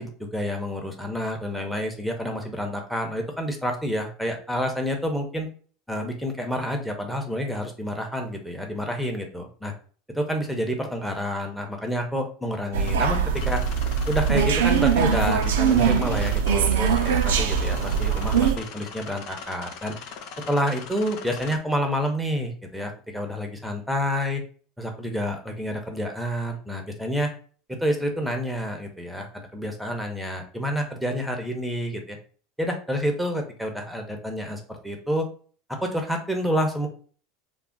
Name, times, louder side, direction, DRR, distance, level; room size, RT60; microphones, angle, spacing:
voice 1, 0.0-5.5 5.9-9.7 10.1-13.6 14.1-19.9 20.5-24.4 24.8-27.3 27.7-32.2 32.6-35.3 35.7-36.9, equal, ahead, 3 dB, 0.7 m, -28 dB
sound 1, 12.7-18.6, right 7 dB, 90° right, 0.3 m, -22 dB
sound 2, 12.8-21.6, left 6 dB, 65° left, 0.5 m, -40 dB
2.4 x 2.1 x 3.7 m, 0.42 s
supercardioid pair, 105°, 0 cm